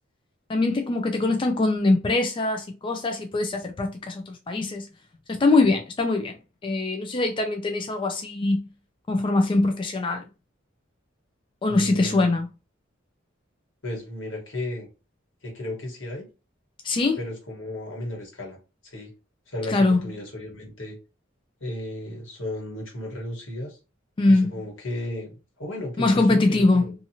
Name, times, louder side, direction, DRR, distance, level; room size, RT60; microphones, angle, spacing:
voice 1, 0.5-4.9 5.3-6.4 6.6-8.7 9.1-10.2 11.6-12.5 16.8-17.2 19.7-20.0 24.2-24.5 26.0-26.9, left 2 dB, 25° left, 0.3 m, -22 dB
voice 2, 11.7-12.3 13.8-14.9 15.4-16.3 17.2-18.6 18.8-19.1 19.5-21.0 21.6-23.8 24.3-26.9, left 1 dB, 80° left, 1.3 m, -34 dB
2.7 x 2.4 x 2.7 m
head